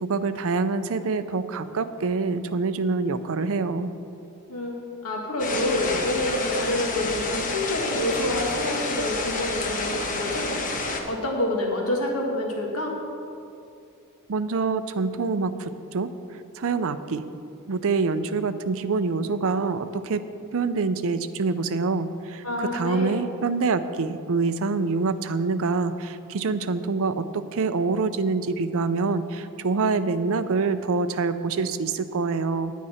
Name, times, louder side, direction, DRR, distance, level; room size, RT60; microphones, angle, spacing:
voice 1, 0.0-3.9 14.3-16.1 16.6-17.2 17.7-20.2 20.5-32.7, right 4 dB, 65° right, 11 dB, 0.5 m, -26 dB
voice 2, 5.0-13.0 22.4-23.2, left 1 dB, 70° left, 0 dB, 1.8 m, -28 dB
sound 1, 5.4-11.0, left 3 dB, 35° left, 1.1 m, -29 dB
9.8 x 9.4 x 5.7 m, 2.6 s
head